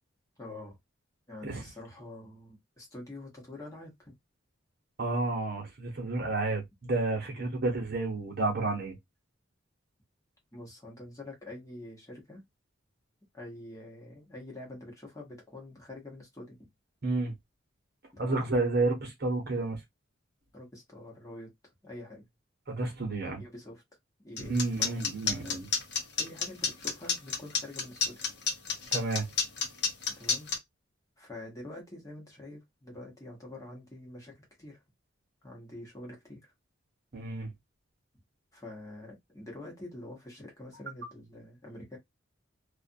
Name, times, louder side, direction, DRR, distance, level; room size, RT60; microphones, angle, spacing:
voice 1, 0.4-0.8 1.3-4.1 7.3-7.5 10.5-12.4 13.3-16.7 18.1-18.5 20.5-21.5 21.8-22.3 23.4-23.8 24.2-25.7 26.2-28.2 30.2-30.5 31.2-34.8 35.4-36.4 38.5-42.0, left 1 dB, 15° left, 1.0 m, -46 dB
voice 2, 5.0-8.9 17.0-17.3 18.2-19.8 22.7-23.4 24.4-25.7 28.9-29.2 37.1-37.5, right 2 dB, 50° right, 1.0 m, -30 dB
sound 1, 24.4-30.6, left 5 dB, 55° left, 0.8 m, -29 dB
2.4 x 2.4 x 2.6 m
head